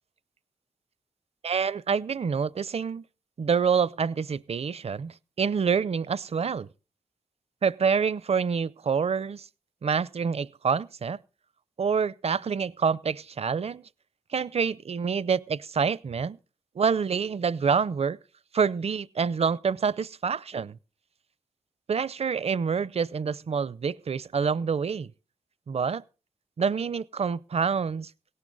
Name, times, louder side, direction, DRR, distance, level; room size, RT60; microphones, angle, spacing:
voice 1, 1.4-3.0 3.4-6.7 7.6-9.5 9.8-11.2 11.8-13.8 14.3-16.4 16.8-18.2 18.5-20.8 21.9-25.1 25.7-26.0 26.6-28.1, right 6 dB, 50° right, 0.6 m, -27 dB
17.5 x 11.0 x 4.0 m
cardioid pair, 70°, 13 cm